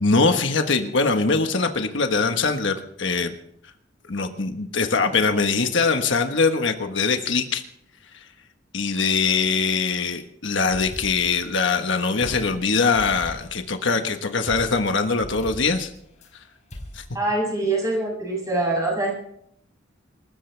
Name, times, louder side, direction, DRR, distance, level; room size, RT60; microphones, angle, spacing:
voice 1, 0.0-3.3 4.1-7.6 8.7-15.9 16.9-17.0, left 4 dB, 65° left, 6 dB, 1.4 m, -22 dB
sound 1, 10.7-11.8 12.2-13.7 14.5-16.3 16.7-17.0, left 1 dB, 40° left, 5.4 m, -40 dB
voice 2, 17.1-19.1, right 2 dB, 20° right, -2 dB, 7.1 m, -24 dB
26.5 x 14.0 x 3.4 m, 0.71 s
head